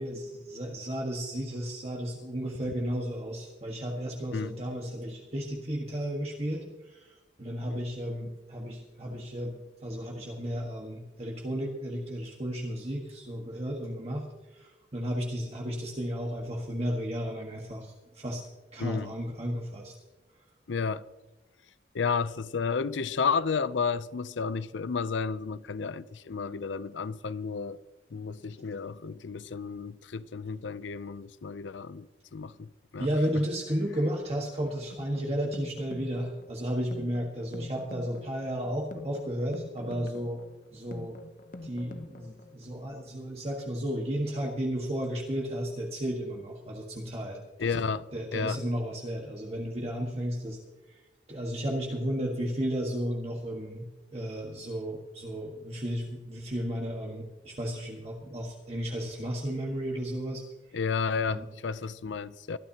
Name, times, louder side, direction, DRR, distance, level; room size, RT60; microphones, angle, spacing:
voice 1, 0.0-9.5 9.8-14.2 14.5-18.4 18.7-19.9 33.0-40.4 40.7-41.2 41.6-47.8 48.1-50.6 50.9-51.0 51.3-60.4 61.2-61.4, equal, 35° right, 1.5 m, -33 dB
voice 2, 18.8-19.1 20.7-21.1 21.9-27.8 28.1-33.1 47.6-48.6 60.7-62.6, left 5 dB, 85° left, 0.5 m, -32 dB
sound 1, 34.7-42.7, left 2 dB, 45° left, 0.8 m, -46 dB
22.5 x 12.5 x 2.9 m
head